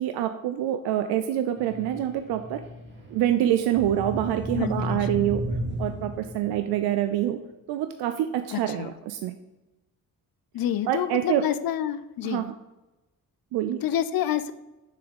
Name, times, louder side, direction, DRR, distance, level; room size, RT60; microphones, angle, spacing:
voice 1, 0.0-2.6 3.1-5.4 5.8-7.4 7.7-9.3 10.9-11.4 12.2-12.4 13.5-13.8, right 11 dB, 85° right, 8 dB, 0.5 m, -26 dB
sound 1, 1.6-6.8, equal, 30° right, 1.6 m, -34 dB
voice 2, 4.5-5.3 8.5-8.9 10.5-12.5 13.8-14.5, left 10 dB, 65° left, 14 dB, 0.6 m, -28 dB
6.7 x 3.5 x 5.2 m, 1.0 s
cardioid pair, 65°, 37 cm